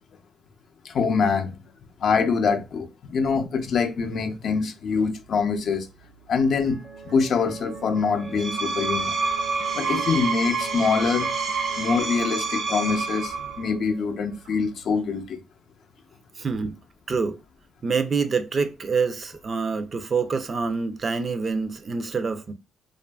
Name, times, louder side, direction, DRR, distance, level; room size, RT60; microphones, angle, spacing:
voice 1, 0.8-1.6 2.0-5.9 6.3-6.8 7.0-9.1 9.7-11.3 11.8-15.4, left 5 dB, 60° left, 0.4 m, -24 dB
sound 1, 4.9-15.2, right 4 dB, 65° right, 0.7 m, -41 dB
Screech, 8.2-13.7, right 4 dB, 90° right, 1.0 m, -28 dB
voice 2, 16.4-16.8 17.1-17.4 17.8-22.5, right 5 dB, 40° right, 0.4 m, -26 dB
2.6 x 2.4 x 2.2 m
cardioid pair, 90°, 0 cm